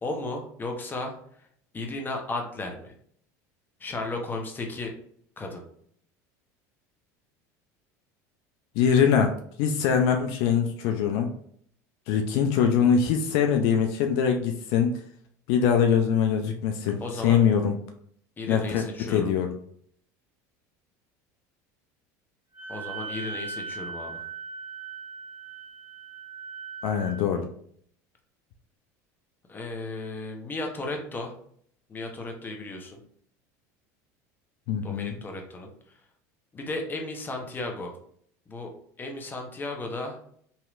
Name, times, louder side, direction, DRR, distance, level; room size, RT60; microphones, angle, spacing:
voice 1, 0.0-1.5 1.7-2.9 3.8-4.9 5.4-5.6 17.0-17.4 18.4-19.3 22.7-24.2 29.5-31.3 31.9-33.0 34.8-35.7 36.5-38.0 38.5-38.7 39.0-40.2, left 2 dB, 20° left, 2 dB, 0.8 m, -34 dB
voice 2, 8.8-9.3 9.6-11.3 12.1-15.0 15.5-17.8 18.5-19.5 26.8-27.4 34.7-35.1, left 7 dB, 70° left, 5 dB, 0.4 m, -23 dB
Wind instrument woodwind instrument, 22.5-27.2, right 4 dB, 20° right, 0.7 m, -39 dB
3.1 x 2.8 x 2.4 m, 0.63 s
supercardioid pair, 100°, 9 cm